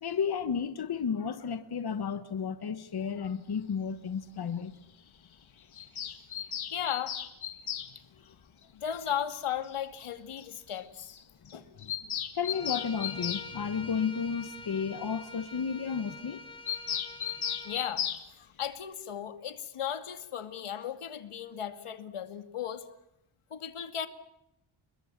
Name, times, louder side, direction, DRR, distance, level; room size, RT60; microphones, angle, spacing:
voice 1, 0.0-4.7 11.8-11.9 12.3-16.4, left 6 dB, 50° left, 1.5 m, -32 dB
Bird vocalization bird call bird song, 5.7-7.9 9.3-9.4 9.7-9.8 10.0-10.1 10.4-10.5 10.7-10.8 11.1-11.2 11.5-13.5 16.7-18.2, left 9 dB, 70° left, 2.3 m, -35 dB
voice 2, 6.7-7.2 8.7-11.2 11.5-11.6 17.6-22.8 23.5-24.1, left 9 dB, 90° left, 2.4 m, -36 dB
Bowed string instrument, 12.4-17.9, left 3 dB, 10° left, 2.7 m, -46 dB
29.5 x 22.0 x 7.4 m
wide cardioid pair, 150°, 50 cm